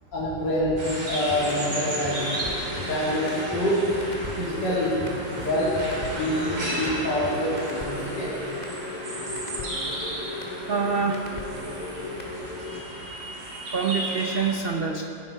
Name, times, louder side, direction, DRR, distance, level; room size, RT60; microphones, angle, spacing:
voice 1, 0.1-2.2 2.9-3.8 4.3-5.7 6.1-8.3, equal, 65° left, -9 dB, 3.1 m, -26 dB
sound 1, 0.8-14.6, right 1 dB, 65° right, 3.3 m, -34 dB
sound 2, 1.2-12.8, left 2 dB, 25° left, 1.6 m, -36 dB
sound 3, 1.3-1.4 1.9-2.9 3.3-4.5 4.8-7.3, left 1 dB, 10° left, 3.5 m, -40 dB
voice 2, 10.7-11.3 13.7-15.1, right 5 dB, 85° right, 3 dB, 0.5 m, -26 dB
15.5 x 11.0 x 4.7 m, 2.8 s
omnidirectional pair, 2.0 m